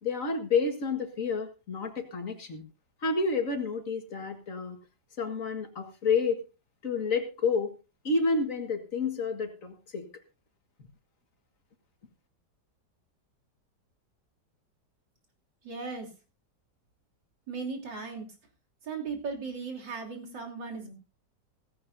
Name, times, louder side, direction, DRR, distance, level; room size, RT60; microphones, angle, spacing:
voice 1, 0.0-2.6 3.0-4.8 5.2-6.4 6.8-7.7 8.0-10.1, left 4 dB, 50° left, 6 dB, 2.0 m, -29 dB
voice 2, 15.6-16.1 17.5-18.3 18.8-20.9, right 4 dB, 90° right, 0 dB, 3.5 m, -37 dB
16.5 x 15.0 x 2.7 m, 0.30 s
omnidirectional pair, 1.9 m